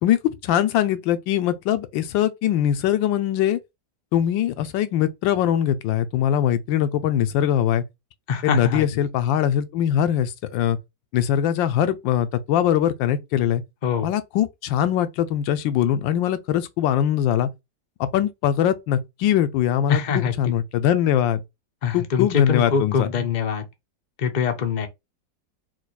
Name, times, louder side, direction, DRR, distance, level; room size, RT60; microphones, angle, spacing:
voice 1, 0.0-3.6 4.1-7.8 8.4-10.8 11.1-13.6 14.0-17.5 18.0-21.4 21.9-23.1, left 10 dB, 85° left, 1.3 m, -22 dB
voice 2, 8.3-8.9 13.8-14.1 19.9-20.3 21.8-23.6 24.2-24.9, left 6 dB, 60° left, 0.4 m, -23 dB
4.5 x 2.2 x 4.1 m
omnidirectional pair, 2.0 m